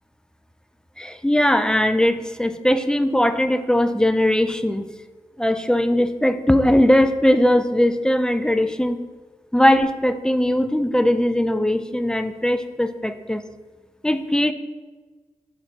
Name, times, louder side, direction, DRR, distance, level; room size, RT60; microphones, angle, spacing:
voice 1, 1.0-4.9 5.4-9.0 9.5-13.4 14.0-14.5, left 1 dB, 5° left, 10 dB, 0.4 m, -19 dB
6.4 x 3.8 x 4.5 m, 1.4 s
cardioid pair, 55°, 13 cm